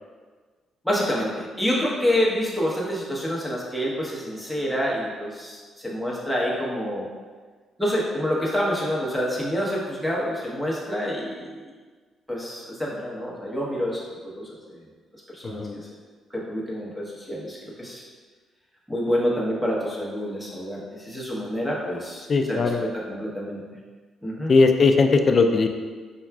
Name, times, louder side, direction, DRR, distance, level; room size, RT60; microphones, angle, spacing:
voice 1, 0.8-7.1 7.8-11.6 12.3-14.6 15.3-15.9 16.3-18.0 18.9-22.2 22.5-23.6 24.2-24.5, equal, ahead, -5 dB, 0.9 m, -27 dB
voice 2, 15.4-15.8 22.3-22.8 24.5-25.7, left 4 dB, 40° left, 5 dB, 0.3 m, -19 dB
5.6 x 2.3 x 2.3 m, 1.5 s
cardioid pair, 90°, 0 cm